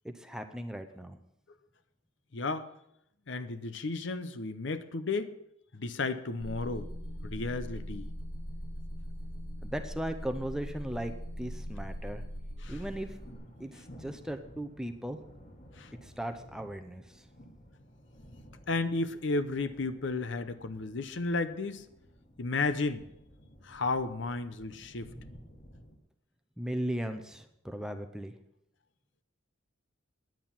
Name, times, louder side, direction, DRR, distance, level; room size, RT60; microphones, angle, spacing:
voice 1, 0.0-1.2 9.6-12.2 12.7-13.2 13.6-15.2 16.0-17.0 26.6-28.3, right 1 dB, 5° right, 6 dB, 0.6 m, -37 dB
voice 2, 2.3-2.7 3.3-5.3 5.7-6.9 7.2-8.1 12.6-12.8 15.8-15.9 18.7-21.9 22.4-23.1 23.6-25.1, left 3 dB, 60° left, 11 dB, 0.7 m, -33 dB
sound 1, 6.4-13.3, equal, 85° left, 2.8 m, -40 dB
sound 2, 12.6-25.9, equal, 40° left, 1.6 m, -54 dB
10.5 x 9.2 x 5.8 m, 0.78 s
head